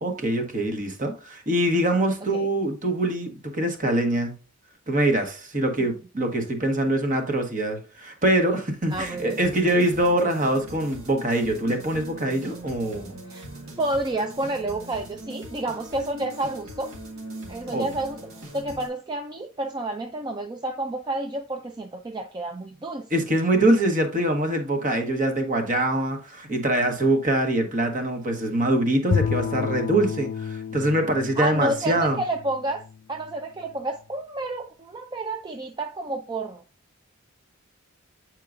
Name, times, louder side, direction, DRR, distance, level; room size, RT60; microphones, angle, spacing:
voice 1, 0.0-4.3 4.9-13.2 17.7-17.9 23.1-32.2, right 1 dB, 40° right, 1.2 m, -24 dB
voice 2, 8.9-9.4 13.3-13.5 13.8-16.9 17.5-18.2 18.5-23.1 31.4-32.8 33.1-36.6, right 2 dB, 20° right, 0.4 m, -30 dB
sound 1, 8.9-18.9, right 1 dB, 80° right, 1.9 m, -41 dB
Bowed string instrument, 29.1-33.3, left 6 dB, 45° left, 0.3 m, -30 dB
8.4 x 4.6 x 2.5 m
head